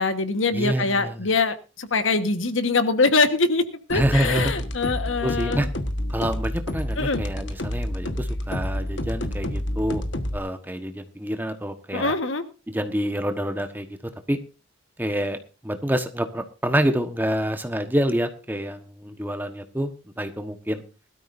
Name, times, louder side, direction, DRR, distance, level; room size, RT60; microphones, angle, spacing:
voice 1, 0.0-5.7 7.0-7.2 11.9-12.4, left 3 dB, 90° left, 9 dB, 1.4 m, -23 dB
voice 2, 0.5-1.3 3.9-4.6 5.2-5.7 6.1-10.0 10.3-12.1 12.7-14.0 14.3-14.4 15.0-15.4 15.6-20.8, equal, 10° right, 7 dB, 1.2 m, -27 dB
sound 1, 3.9-10.4, left 1 dB, 70° left, 1.4 m, -29 dB
20.5 x 13.0 x 2.6 m, 0.32 s
head